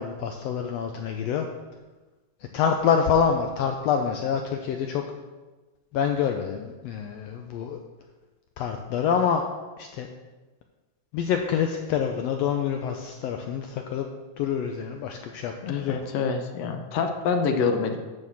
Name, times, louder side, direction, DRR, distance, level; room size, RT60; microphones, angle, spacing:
voice 1, 0.0-1.4 2.5-5.0 5.9-7.8 8.6-9.5 9.8-10.1 11.1-14.0 14.4-16.0, left 7 dB, 90° left, 4 dB, 1.4 m, -26 dB
voice 2, 15.6-18.0, left 5 dB, 70° left, 5 dB, 1.7 m, -26 dB
9.1 x 4.3 x 7.0 m, 1.2 s
omnidirectional pair, 3.5 m